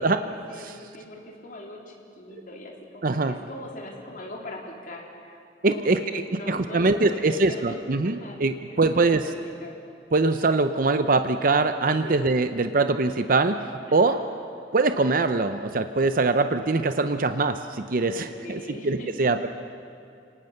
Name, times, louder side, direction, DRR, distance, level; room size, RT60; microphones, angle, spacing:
voice 1, 0.0-5.4 5.7-8.4 8.9-9.8 12.0-12.3 13.9-14.3 18.1-19.1, left 1 dB, 50° left, -1 dB, 3.7 m, -40 dB
voice 2, 3.0-3.4 5.6-6.2 6.5-9.3 10.1-14.1 14.7-19.5, right 3 dB, 50° right, 9 dB, 0.7 m, -23 dB
30.0 x 18.5 x 6.6 m, 2.5 s
head